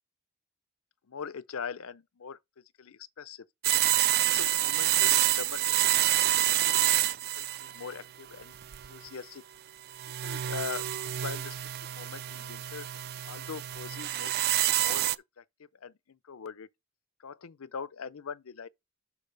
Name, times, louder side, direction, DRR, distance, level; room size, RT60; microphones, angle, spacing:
voice 1, 1.1-2.4 2.8-3.5 4.2-6.3 6.6-7.1 7.4-8.6 8.9-9.4 10.2-11.6 11.9-12.9 13.2-14.4 14.6-15.1 15.4-15.5 15.8-16.7 17.2-18.7, left 6 dB, 75° left, 0.6 m, -42 dB
sound 1, 3.6-8.0 8.5-9.1 10.0-15.2, right 13 dB, 50° right, 0.4 m, -27 dB
12.0 x 4.6 x 3.3 m
head